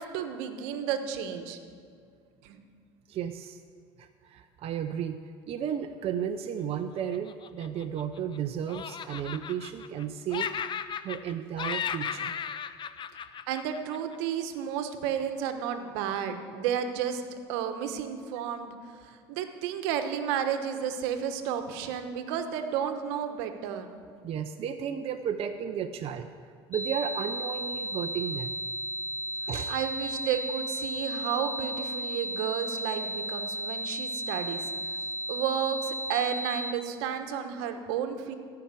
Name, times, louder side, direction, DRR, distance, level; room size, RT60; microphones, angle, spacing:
voice 1, 0.0-1.6 2.4-2.6 13.5-17.2 17.5-18.7 19.0-23.9 29.7-34.7 35.3-38.3, right 8 dB, 75° right, 7 dB, 1.1 m, -32 dB
voice 2, 3.1-3.6 4.0-5.2 5.5-10.5 11.0-12.4 24.2-26.3 26.7-28.5 29.5-29.7, right 8 dB, 45° right, 6 dB, 0.6 m, -33 dB
Laughter, 7.1-8.4 8.7-10.0 10.3-11.3 11.6-14.2, left 7 dB, 35° left, 0.6 m, -35 dB
sound 1, 26.7-36.7, equal, 15° left, 1.5 m, -34 dB
15.0 x 5.8 x 8.2 m, 2.2 s
supercardioid pair, 85°, 13 cm